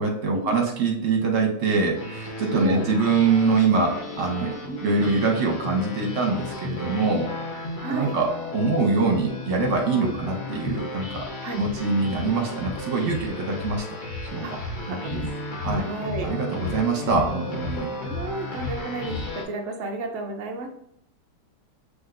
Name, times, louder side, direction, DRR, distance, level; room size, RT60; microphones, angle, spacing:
voice 1, 0.0-4.5 4.8-7.3 7.9-11.3 11.6-13.9 14.3-14.6 14.9-15.3 15.6-15.9 16.2-17.9, right 4 dB, 50° right, 2 dB, 1.1 m, -24 dB
sound 1, 1.9-19.4, left 2 dB, 50° left, 0.5 m, -34 dB
voice 2, 2.5-2.9 4.7-4.9 7.8-8.1 10.0-10.2 11.4-11.6 14.4-15.4 15.7-16.3 16.7-16.8 18.0-20.7, right 2 dB, 90° right, 2 dB, 0.6 m, -33 dB
6.1 x 3.3 x 2.5 m, 0.71 s
omnidirectional pair, 2.2 m